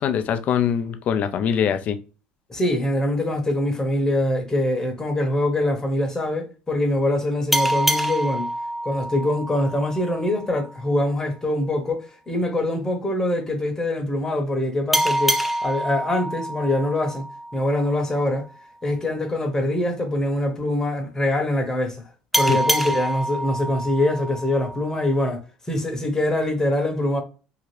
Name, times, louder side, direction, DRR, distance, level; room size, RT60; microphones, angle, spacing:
voice 1, 0.0-2.0 22.5-22.6, left 8 dB, 50° left, 0.4 m, -23 dB
voice 2, 2.5-8.5 8.8-17.3 17.5-18.5 18.8-22.1 22.4-25.4 25.7-27.2, left 1 dB, 20° left, 0.9 m, -24 dB
sound 1, 7.5-10.7 14.9-18.2 22.3-25.3, right 1 dB, ahead, 0.5 m, -26 dB
2.7 x 2.4 x 3.1 m
supercardioid pair, 85°, 3 cm